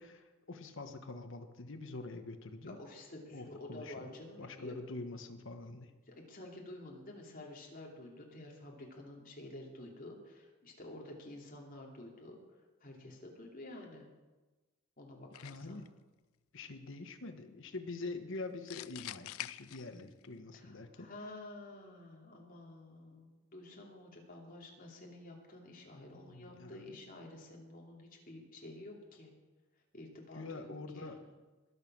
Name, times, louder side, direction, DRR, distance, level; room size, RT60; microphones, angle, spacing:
voice 1, 0.0-2.8 3.3-4.1 4.4-5.9 15.4-15.9 16.5-21.1 26.1-26.9 30.4-31.2, left 3 dB, 65° left, 7 dB, 1.4 m, -45 dB
voice 2, 2.7-4.8 6.0-14.1 15.0-15.8 20.5-29.3 29.9-31.2, left 1 dB, 45° left, -1 dB, 3.0 m, -50 dB
sound 1, 15.3-15.9 18.7-20.3, left 14 dB, 90° left, 0.4 m, -45 dB
21.0 x 7.3 x 6.2 m, 1.2 s
head